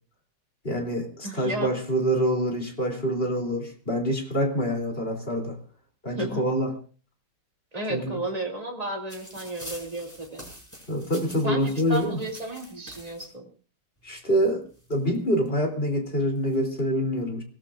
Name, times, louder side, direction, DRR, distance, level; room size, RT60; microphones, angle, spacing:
voice 1, 0.6-5.6 6.0-6.7 7.9-8.2 10.9-12.2 14.0-14.6 14.9-17.4, equal, 30° left, 3 dB, 3.4 m, -26 dB
voice 2, 1.2-1.7 6.2-6.4 7.7-10.5 11.4-13.5, right 1 dB, 20° right, 0 dB, 2.8 m, -33 dB
sound 1, 9.1-13.3 14.2-14.3 14.5-15.5 16.2-16.6, equal, 10° left, 5.6 m, -45 dB
25.0 x 18.0 x 2.5 m, 0.39 s
omnidirectional pair, 1.9 m